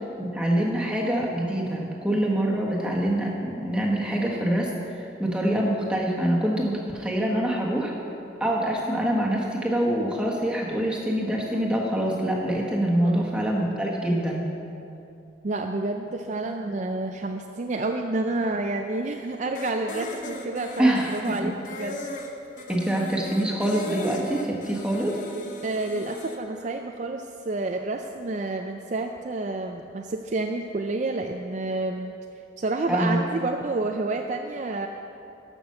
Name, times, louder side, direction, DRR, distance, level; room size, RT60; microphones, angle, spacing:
voice 1, 0.2-7.9 8.4-14.5 20.8-21.5 22.7-25.2 32.9-33.2, right 1 dB, 5° right, -3 dB, 1.4 m, -25 dB
voice 2, 15.4-22.0 25.6-32.1 32.6-34.9, right 2 dB, 40° right, 4 dB, 0.4 m, -29 dB
sound 1, 19.6-26.4, left 1 dB, 40° left, 0.9 m, -38 dB
13.0 x 6.1 x 6.7 m, 2.7 s
head